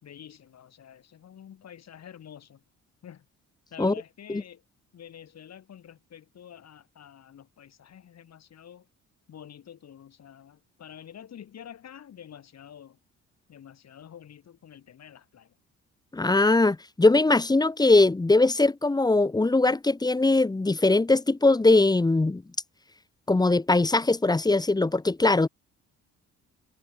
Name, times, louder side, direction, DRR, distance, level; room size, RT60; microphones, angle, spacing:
voice 1, 0.0-2.6 3.0-3.3 3.7-4.6 4.9-8.9 9.3-13.0 13.5-15.6, left 9 dB, 60° left, 3.8 m, -48 dB
voice 2, 16.1-22.4 23.3-25.5, left 2 dB, 15° left, 1.0 m, -21 dB
cardioid pair, 90°, 30 cm